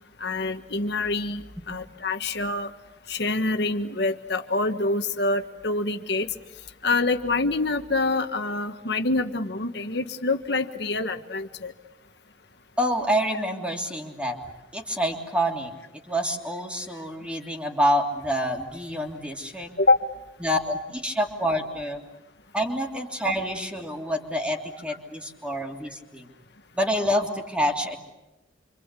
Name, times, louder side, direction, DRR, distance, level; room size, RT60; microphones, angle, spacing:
voice 1, 0.2-2.7 3.1-6.3 6.8-11.7 19.8-20.0, left 2 dB, 65° left, 7 dB, 1.5 m, -26 dB
voice 2, 12.8-14.4 14.7-15.7 16.1-19.7 20.4-22.0 22.5-26.3 26.7-28.0, equal, 5° right, 2 dB, 3.1 m, -27 dB
27.5 x 26.0 x 8.3 m, 1.0 s
head